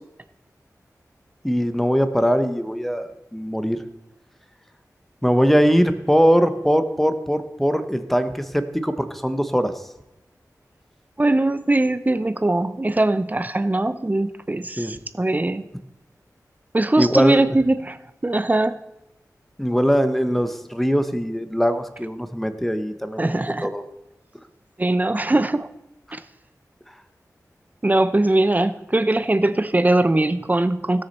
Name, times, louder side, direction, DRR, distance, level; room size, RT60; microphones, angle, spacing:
voice 1, 1.4-3.8 5.2-9.8 14.8-15.0 17.0-17.4 19.6-23.4 23.6-23.8, equal, 5° left, 9 dB, 1.0 m, -21 dB
voice 2, 11.2-15.6 16.7-18.8 23.2-23.7 24.8-25.7 26.1-26.2 27.8-31.0, right 2 dB, 25° right, 12 dB, 0.6 m, -21 dB
17.5 x 6.5 x 4.2 m, 0.91 s
wide cardioid pair, 55°, 6 cm